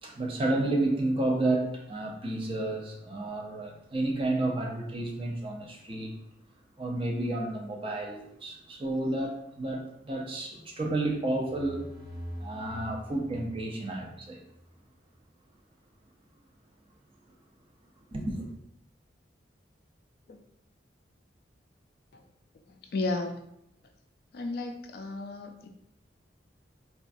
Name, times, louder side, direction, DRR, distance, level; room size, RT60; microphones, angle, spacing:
voice 1, 0.0-6.2 6.8-11.9 12.4-14.4 18.1-18.5, right 2 dB, 30° right, 0 dB, 0.5 m, -31 dB
sound 1, 11.2-14.7, equal, 60° right, 1.2 m, -44 dB
voice 2, 22.9-23.4 24.3-25.7, left 3 dB, 55° left, 4 dB, 0.4 m, -33 dB
3.7 x 2.3 x 2.5 m, 0.77 s
head